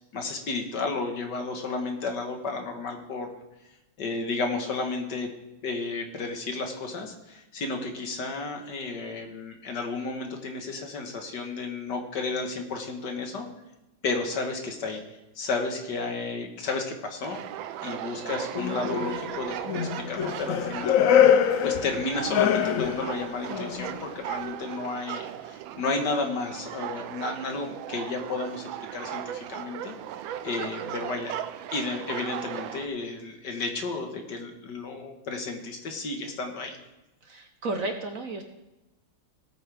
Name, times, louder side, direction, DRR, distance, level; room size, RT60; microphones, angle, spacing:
voice 1, 0.1-3.3 4.0-5.3 5.6-13.5 14.0-15.0 15.4-17.4 17.8-21.4 21.6-29.9 30.4-31.4 31.7-36.8, left 3 dB, 60° left, 4 dB, 2.0 m, -32 dB
sound 1, 17.2-32.9, right 11 dB, 80° right, 1.4 m, -37 dB
sound 2, 18.5-19.4 19.7-23.2 23.5-24.0, left 9 dB, 85° left, 0.7 m, -24 dB
voice 2, 21.2-21.5 30.6-31.0 37.2-38.4, right 2 dB, 55° right, 5 dB, 1.1 m, -35 dB
17.5 x 8.7 x 3.5 m, 0.99 s
omnidirectional pair, 2.1 m